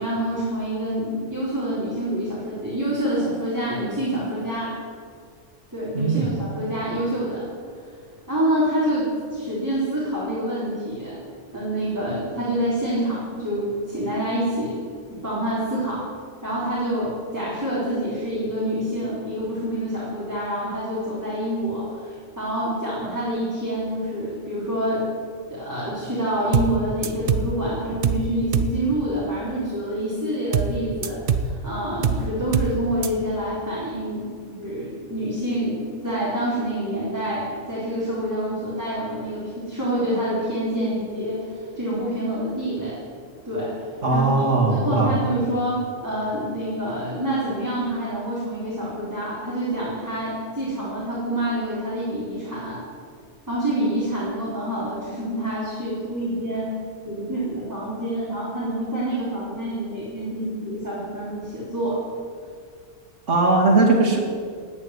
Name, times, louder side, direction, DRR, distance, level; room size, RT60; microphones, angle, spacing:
voice 1, 0.0-4.7 5.7-7.4 8.3-11.2 11.5-14.7 15.1-16.0 16.4-25.1 25.5-43.0 43.4-44.3 44.6-52.8 53.5-56.8 57.0-62.0, right 1 dB, 15° right, -9 dB, 4.0 m, -27 dB
voice 2, 5.9-6.3 44.0-45.1 63.3-64.2, right 3 dB, 70° right, -1 dB, 2.8 m, -19 dB
sound 1, 26.5-26.8 27.0-27.5 28.0-28.3 28.5-28.8 30.5-30.8 31.0-31.5 32.0-32.3 32.5-32.8 33.0-33.1, right 6 dB, 50° right, 0.9 m, -22 dB
17.5 x 7.4 x 9.9 m, 2.1 s
omnidirectional pair, 1.3 m